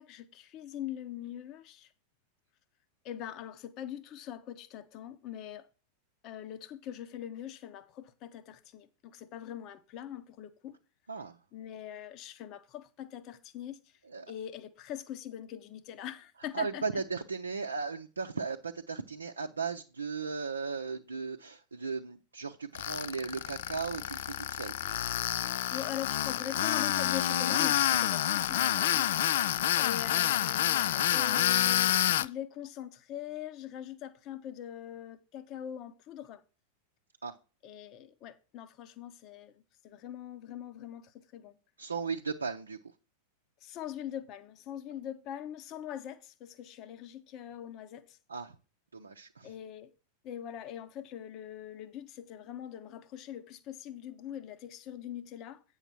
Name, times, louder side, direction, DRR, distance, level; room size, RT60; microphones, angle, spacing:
voice 1, 0.0-1.9 3.0-5.7 6.2-10.8 11.5-14.0 14.3-16.8 25.7-29.3 29.8-36.4 37.6-41.6 43.6-48.2 49.4-49.9 50.2-55.6, left 10 dB, 40° left, 0.9 m, -42 dB
voice 2, 11.1-11.4 14.0-14.3 16.4-24.8 29.4-29.7 30.9-31.3 37.2-37.4 41.8-43.0 48.3-48.6 48.9-49.5, right 5 dB, 75° right, 0.6 m, -37 dB
Tools, 22.7-32.3, left 12 dB, 55° left, 0.3 m, -28 dB
9.0 x 6.5 x 4.3 m
figure-of-eight pair, 90°, 0 cm